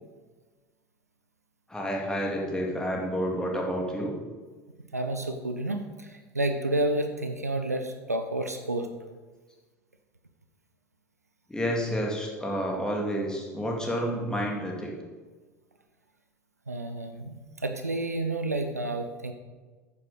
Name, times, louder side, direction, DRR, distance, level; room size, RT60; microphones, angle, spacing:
voice 1, 1.7-4.1 11.5-14.9, equal, 10° left, -1 dB, 2.4 m, -29 dB
voice 2, 4.9-6.1 6.3-8.9 16.7-19.3, right 1 dB, 90° right, 6 dB, 0.6 m, -30 dB
9.6 x 7.0 x 5.1 m, 1.3 s
figure-of-eight pair, 70°, 8 cm